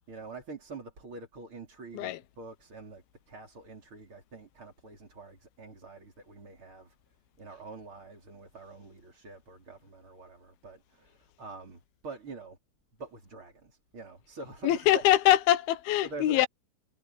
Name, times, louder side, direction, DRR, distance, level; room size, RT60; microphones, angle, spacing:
voice 1, 0.1-6.9 7.4-12.6 13.0-15.0 16.0-16.5, right 3 dB, 35° right, 4.8 m, -45 dB
voice 2, 14.6-16.5, left 13 dB, 85° left, 2.9 m, -23 dB
omnidirectional pair, 4.3 m